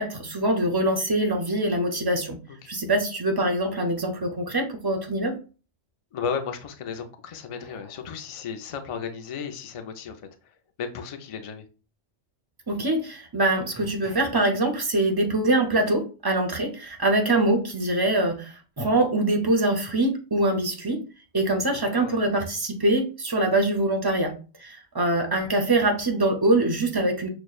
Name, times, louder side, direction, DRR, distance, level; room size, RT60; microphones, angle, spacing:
voice 1, 0.0-2.4 2.7-5.3 12.7-21.0 21.3-24.3 24.6-27.3, right 1 dB, 30° right, 0.4 m, -24 dB
voice 2, 6.1-10.3 10.8-11.7 21.7-22.2, left 6 dB, 65° left, 0.3 m, -34 dB
6.1 x 2.1 x 2.3 m
omnidirectional pair, 1.2 m